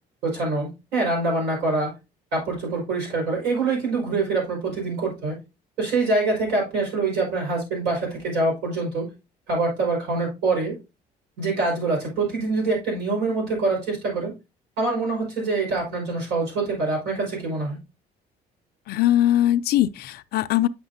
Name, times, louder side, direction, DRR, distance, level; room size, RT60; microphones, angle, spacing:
voice 1, 0.2-1.9 2.3-5.4 5.8-9.1 9.5-10.8 11.4-14.3 14.8-17.8, right 3 dB, 80° right, 5.0 m, -25 dB
voice 2, 18.9-20.7, left 13 dB, 70° left, 0.5 m, -21 dB
8.7 x 5.9 x 2.7 m
cardioid pair, 110°, 17 cm